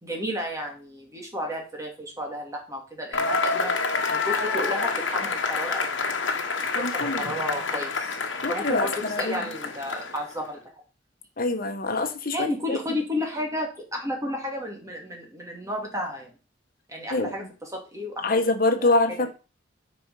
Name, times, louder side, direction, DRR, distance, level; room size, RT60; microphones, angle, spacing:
voice 1, 0.0-3.7 4.1-6.1 6.8-8.2 8.5-10.6 12.3-16.3 16.9-18.3 18.8-19.3, left 1 dB, 15° right, 2.6 m, -32 dB
Cheering / Applause / Crowd, 3.1-10.4, left 4 dB, 70° left, 1.4 m, -28 dB
voice 2, 6.7-7.3 8.4-9.4 11.4-12.8 17.1-17.3 18.2-19.3, left 2 dB, 50° left, 1.4 m, -25 dB
9.6 x 5.3 x 5.0 m
head